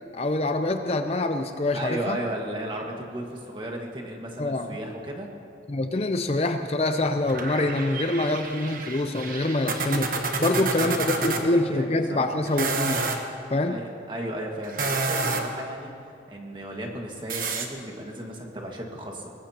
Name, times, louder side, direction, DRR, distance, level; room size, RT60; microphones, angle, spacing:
voice 1, 0.1-2.2 4.4-4.7 5.7-10.1 10.4-13.0 13.5-13.8, left 2 dB, 35° left, 7 dB, 0.6 m, -25 dB
voice 2, 1.7-5.3 10.4-12.5 13.7-15.9 16.3-19.3, right 1 dB, 25° right, 0 dB, 1.8 m, -35 dB
sound 1, 7.3-11.4 12.4-13.2 14.6-15.6 17.3-17.7, right 3 dB, 50° right, 1.2 m, -29 dB
23.0 x 19.0 x 2.9 m, 2.4 s
head